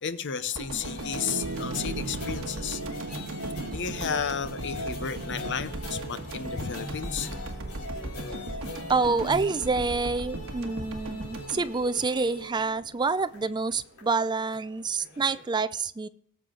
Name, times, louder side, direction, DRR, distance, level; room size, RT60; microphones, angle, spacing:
voice 1, 0.0-2.8 3.7-7.4, left 7 dB, 55° left, 0.8 m, -33 dB
sound 1, 0.6-12.7 13.0-13.2, right 1 dB, 65° right, 1.4 m, -38 dB
sound 2, 0.8-15.5, left 1 dB, 80° left, 3.7 m, -40 dB
sound 3, 1.0-10.6, right 4 dB, 90° right, 0.5 m, -42 dB
voice 2, 8.9-16.1, right 4 dB, 20° right, 0.4 m, -27 dB
18.5 x 7.1 x 3.8 m
head